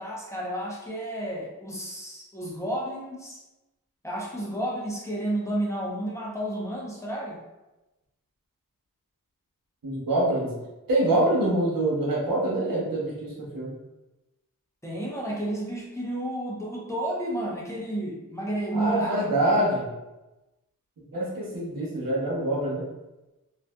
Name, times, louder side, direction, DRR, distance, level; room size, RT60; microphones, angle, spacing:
voice 1, 0.0-3.4 4.0-7.4 14.8-19.3, right 1 dB, 10° left, -4 dB, 0.7 m, -31 dB
voice 2, 9.8-10.6 10.9-13.7 18.7-19.9 21.0-22.8, right 1 dB, 85° right, -5 dB, 1.0 m, -25 dB
2.6 x 2.4 x 2.2 m, 1.0 s
wide cardioid pair, 55°, 34 cm